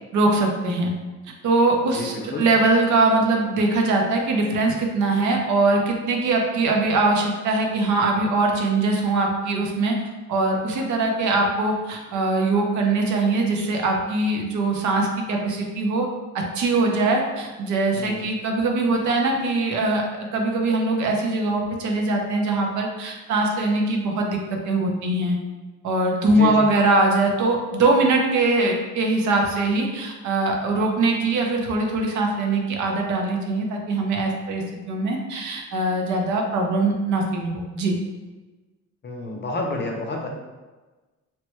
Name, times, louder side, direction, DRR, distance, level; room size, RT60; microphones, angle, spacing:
voice 1, 0.1-0.9 1.4-10.0 10.3-16.1 16.3-24.4 24.6-25.4 25.8-38.0, right 2 dB, 75° right, 1 dB, 0.7 m, -22 dB
voice 2, 1.9-2.4 17.9-18.3 26.4-26.7 39.0-40.3, left 2 dB, 35° left, 1 dB, 0.6 m, -29 dB
3.1 x 2.1 x 3.0 m, 1.2 s
cardioid pair, 90°, 30 cm